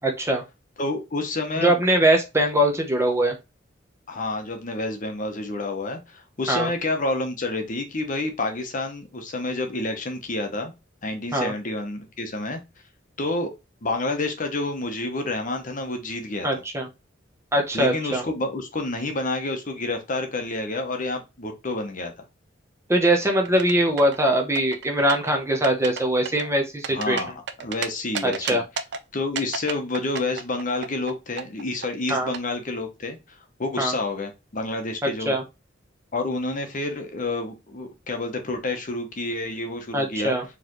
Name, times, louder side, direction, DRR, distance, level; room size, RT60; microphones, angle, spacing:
voice 1, 0.0-0.4 1.6-3.4 6.5-6.7 11.3-11.5 16.4-16.9 17.5-18.2 22.9-27.2 28.2-28.6 32.1-32.3 33.8-33.9 35.3-35.4 39.9-40.4, right 1 dB, 15° right, 0.9 m, -22 dB
voice 2, 0.8-1.8 4.1-10.7 11.0-12.6 13.2-13.5 13.8-16.5 17.7-22.1 26.9-27.3 27.6-28.6 29.1-35.4 36.1-40.3, left 2 dB, 45° left, 0.9 m, -29 dB
sound 1, 23.4-24.2 24.6-25.3 25.6-26.0 26.3-27.9 28.1-29.0 29.4-31.1 31.4-32.4, right 6 dB, 60° right, 0.5 m, -31 dB
4.4 x 3.2 x 3.0 m
head